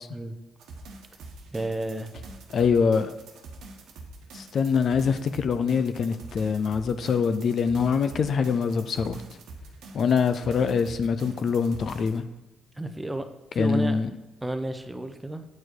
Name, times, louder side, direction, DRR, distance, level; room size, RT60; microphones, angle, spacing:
sound 1, 0.6-12.2, right 2 dB, 80° right, 1.1 m, -45 dB
voice 1, 1.5-2.1 12.8-14.0 14.4-15.4, right 1 dB, 10° right, 8 dB, 0.7 m, -32 dB
voice 2, 2.5-3.1 4.3-9.2 9.9-12.2 13.6-14.1, left 6 dB, 55° left, 11 dB, 0.5 m, -24 dB
8.3 x 4.6 x 4.5 m, 1.1 s
cardioid pair, 90°, 0 cm